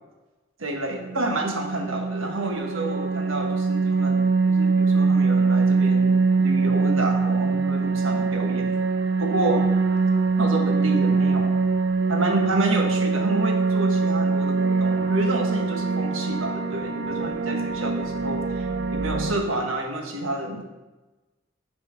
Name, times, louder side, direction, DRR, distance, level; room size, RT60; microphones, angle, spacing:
voice 1, 0.6-8.7 9.2-9.7 10.4-11.5 12.1-20.6, right 2 dB, 90° right, 2 dB, 1.4 m, -29 dB
sound 1, 0.9-19.4, right 4 dB, 55° right, 0.5 m, -23 dB
7.3 x 4.4 x 5.7 m, 1.1 s
head